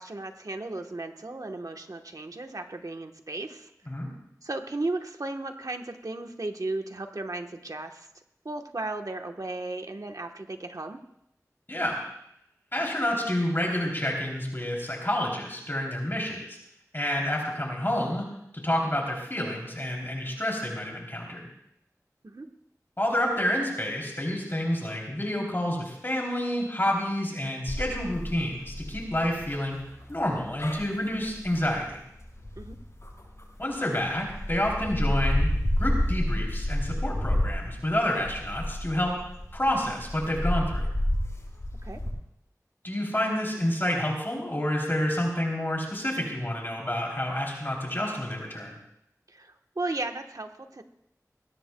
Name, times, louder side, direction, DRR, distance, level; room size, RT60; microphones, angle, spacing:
voice 1, 0.0-3.7 4.4-8.1 8.4-11.0 22.2-22.5 32.6-32.8 41.8-42.0 49.3-50.8, right 2 dB, 70° right, 5 dB, 1.1 m, -35 dB
voice 2, 12.7-16.6 16.9-18.2 18.5-21.5 23.0-29.8 30.1-32.0 33.6-35.5 35.8-39.1 39.5-40.9 42.8-48.8, left 1 dB, 35° left, -1 dB, 3.1 m, -29 dB
sound 1, 27.7-33.7 34.2-42.1, left 1 dB, 50° left, 5.5 m, -30 dB
21.0 x 17.5 x 2.2 m, 0.78 s
wide cardioid pair, 50°, 6 cm